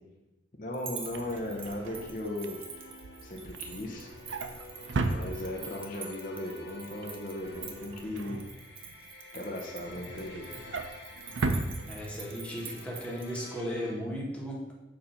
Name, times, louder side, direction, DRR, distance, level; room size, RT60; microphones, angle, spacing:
voice 1, 0.6-2.6 3.2-4.1 5.1-8.4 9.3-10.5, left 1 dB, 45° left, -1 dB, 0.7 m, -37 dB
sound 1, 0.7-13.4, right 6 dB, 30° right, 0.6 m, -46 dB
Drawer open or close, 0.9-5.9 6.3-6.6 6.8-9.1 9.5-12.5 12.8-13.0 13.3-13.4, right 3 dB, 85° right, 0.5 m, -37 dB
sound 2, 1.1-13.9, left 3 dB, 65° left, 1.2 m, -50 dB
voice 2, 11.9-14.6, equal, 5° left, -4 dB, 1.2 m, -36 dB
6.7 x 2.7 x 5.6 m, 1.0 s
head